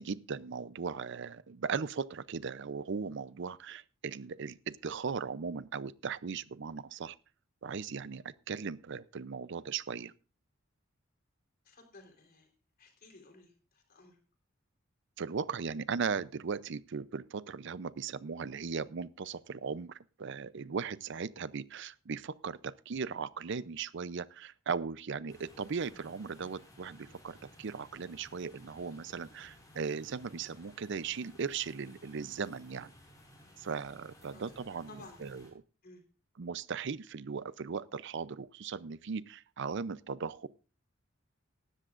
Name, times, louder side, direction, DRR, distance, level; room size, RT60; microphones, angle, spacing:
voice 1, 0.0-7.2 7.6-10.1 15.2-32.9 33.6-34.9 35.2-35.4 36.4-40.5, right 5 dB, 60° right, 0.5 m, -38 dB
voice 2, 11.6-12.5 12.8-14.2 34.3-34.5 34.9-35.2 35.8-36.0, left 2 dB, 50° left, 3.8 m, -55 dB
sound 1, 25.3-35.5, left 1 dB, 20° left, 5.2 m, -58 dB
18.5 x 13.0 x 2.5 m
head